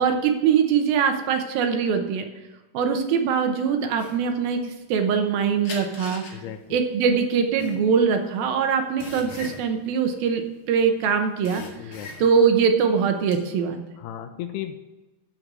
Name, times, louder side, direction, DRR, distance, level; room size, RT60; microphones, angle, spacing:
voice 1, 0.0-2.2 2.7-6.2 6.7-10.4 10.7-13.8, right 6 dB, 75° right, 6 dB, 2.4 m, -22 dB
sound 1, 3.9-5.3 5.6-10.9 11.2-12.6 12.9-13.4, left 3 dB, 45° left, 2.6 m, -40 dB
voice 2, 6.3-6.8 11.8-12.1 14.0-14.8, left 11 dB, 85° left, 8 dB, 2.5 m, -35 dB
13.0 x 5.2 x 6.1 m, 1.1 s
omnidirectional pair, 4.8 m